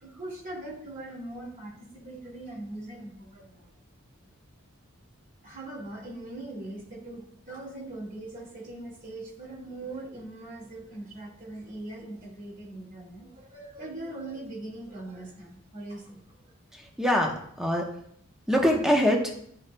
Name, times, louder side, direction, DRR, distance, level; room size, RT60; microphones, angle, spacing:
voice 1, 0.0-3.8 5.4-16.5, right 2 dB, 40° right, -4 dB, 2.1 m, -41 dB
voice 2, 16.7-17.9 18.5-19.3, equal, 5° right, 1 dB, 0.9 m, -24 dB
11.5 x 4.6 x 2.2 m, 0.69 s
head